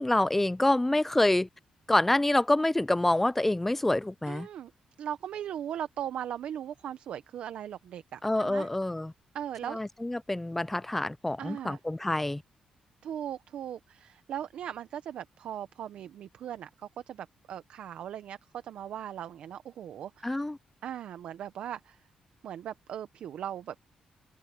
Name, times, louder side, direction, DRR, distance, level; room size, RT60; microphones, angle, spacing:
voice 1, 0.0-1.5 1.9-4.5 8.2-9.1 9.7-12.4 20.2-20.6, left 1 dB, 10° left, 0.4 m, -27 dB
voice 2, 4.3-4.7 5.0-8.7 9.3-9.8 11.4-11.8 13.0-18.4 18.6-20.3 20.8-22.0 22.4-23.9, right 10 dB, 75° right, 0.8 m, -38 dB
open air
cardioid pair, 105°, 2 cm